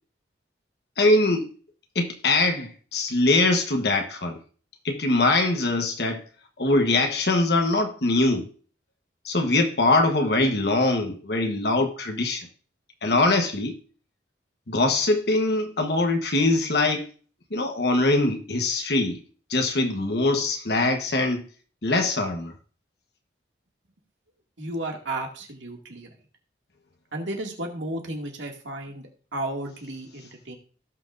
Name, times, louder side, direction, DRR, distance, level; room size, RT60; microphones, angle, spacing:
voice 1, 1.0-1.5 1.9-4.4 4.8-6.2 6.6-8.5 9.2-12.5 13.0-13.7 14.7-17.1 17.5-19.2 19.5-21.4 21.8-22.5, left 2 dB, 65° left, 1.2 m, -22 dB
voice 2, 24.6-26.2 27.1-30.6, right 1 dB, 90° right, 2.3 m, -33 dB
17.5 x 6.0 x 2.6 m
head